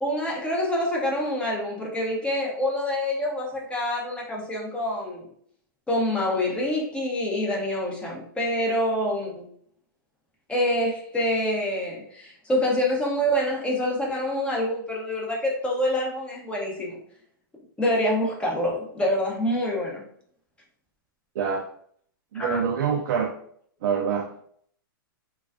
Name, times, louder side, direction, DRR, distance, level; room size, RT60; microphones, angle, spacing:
voice 1, 0.0-5.3 5.9-9.5 10.5-16.9 17.8-20.0 22.3-22.6, left 1 dB, 10° left, -3 dB, 0.6 m, -26 dB
voice 2, 21.3-21.6 22.3-23.3 23.8-24.3, right 7 dB, 60° right, 1 dB, 0.4 m, -25 dB
2.3 x 2.2 x 2.4 m, 0.63 s
hypercardioid pair, 120°, 12 cm